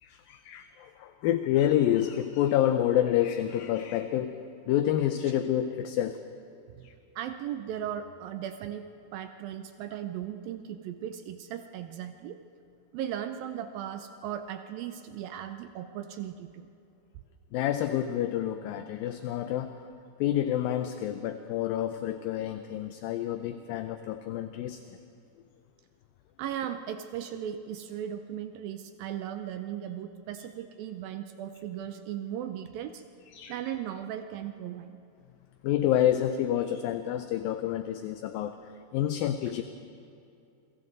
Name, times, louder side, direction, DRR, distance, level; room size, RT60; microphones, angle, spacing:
voice 1, 0.0-4.4 4.7-6.2 6.8-6.9 17.5-19.7 20.2-24.8 33.3-33.6 35.6-38.6 38.9-39.6, left 11 dB, 80° left, 9 dB, 2.2 m, -28 dB
voice 2, 7.2-8.9 9.1-12.4 12.9-16.7 26.4-33.0 33.5-34.9, right 10 dB, 80° right, 8 dB, 2.2 m, -37 dB
28.0 x 23.0 x 4.0 m, 2.6 s
omnidirectional pair, 4.6 m